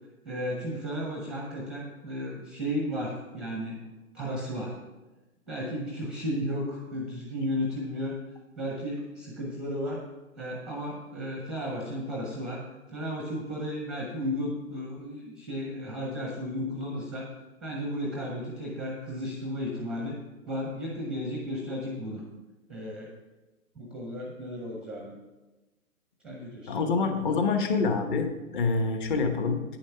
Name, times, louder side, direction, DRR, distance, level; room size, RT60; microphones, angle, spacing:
voice 1, 0.2-3.8 4.1-4.8 5.5-8.2 8.6-10.1 10.4-12.6 12.9-17.3 17.6-20.2 20.5-22.2 22.7-23.1 23.8-25.2 26.2-26.9, equal, ahead, -1 dB, 0.7 m, -34 dB
voice 2, 26.7-29.6, left 4 dB, 35° left, 6 dB, 1.1 m, -26 dB
9.3 x 7.2 x 5.7 m, 1.1 s
hypercardioid pair, 145°, 43 cm